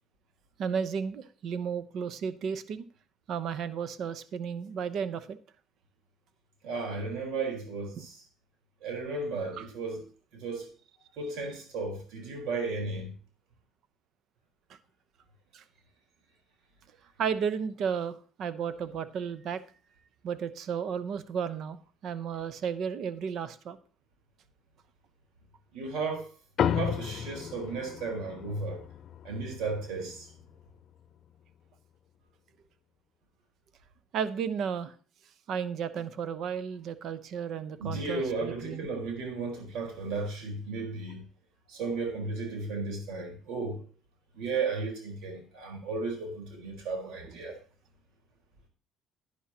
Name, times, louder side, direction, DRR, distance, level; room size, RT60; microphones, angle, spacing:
voice 1, 0.6-2.8 3.3-5.4 8.0-8.1 9.6-9.7 15.5-15.6 17.2-19.6 20.2-23.8 34.1-34.9 35.5-38.9 47.3-47.4, right 7 dB, 60° right, 0.8 m, -33 dB
voice 2, 6.6-8.2 8.8-10.0 10.3-10.7 11.2-13.1 25.7-26.3 26.6-28.8 29.2-30.3 37.8-41.2 41.7-43.8 44.3-47.5, right 3 dB, 75° right, 4.2 m, -34 dB
sound 1, 26.6-31.3, left 9 dB, 55° left, 0.5 m, -34 dB
11.0 x 10.0 x 2.9 m
cardioid pair, 95°, 0 cm